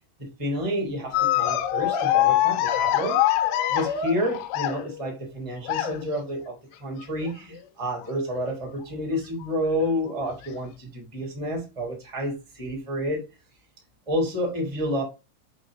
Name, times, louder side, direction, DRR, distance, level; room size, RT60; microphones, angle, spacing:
voice 1, 0.4-3.2 3.7-6.5 6.8-13.2 14.1-15.0, equal, 10° right, 2.3 m, -29 dB
sound 1, 1.1-5.1 5.7-6.2 7.2-7.6 8.0-8.1 9.4-9.5 10.3-10.5, left 12 dB, 85° left, 3.3 m, -24 dB
9.2 x 4.4 x 3.9 m
omnidirectional pair, 5.9 m